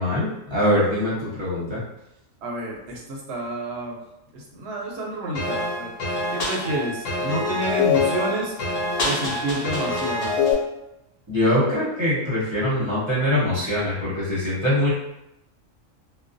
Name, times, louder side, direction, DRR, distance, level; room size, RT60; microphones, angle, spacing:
voice 1, 0.0-1.8 11.3-14.9, left 1 dB, 25° right, -10 dB, 0.7 m, -23 dB
voice 2, 2.4-4.0 4.3-5.9 6.3-8.6 9.0-10.4, right 1 dB, 65° right, -1 dB, 0.8 m, -29 dB
sound 1, 5.3-10.5, left 3 dB, 80° left, 1.1 m, -25 dB
2.4 x 2.2 x 2.5 m, 0.87 s
omnidirectional pair, 1.4 m